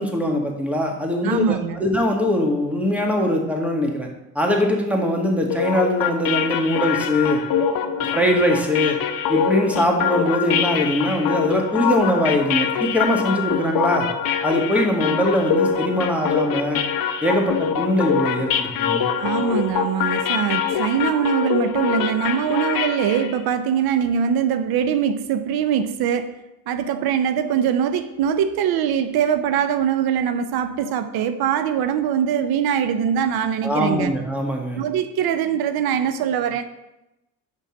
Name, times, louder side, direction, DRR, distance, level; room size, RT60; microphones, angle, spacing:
voice 1, 0.0-4.1 4.3-7.4 8.1-9.0 9.3-14.1 14.4-16.8 17.2-19.1 33.6-34.8, equal, 5° right, 1 dB, 1.6 m, -22 dB
voice 2, 1.2-1.8 19.2-26.3 26.7-34.1 34.8-36.6, right 8 dB, 80° right, 10 dB, 0.6 m, -22 dB
sound 1, 5.5-23.4, left 7 dB, 65° left, 0.8 m, -24 dB
5.5 x 5.2 x 6.4 m, 0.94 s
cardioid pair, 95°, 37 cm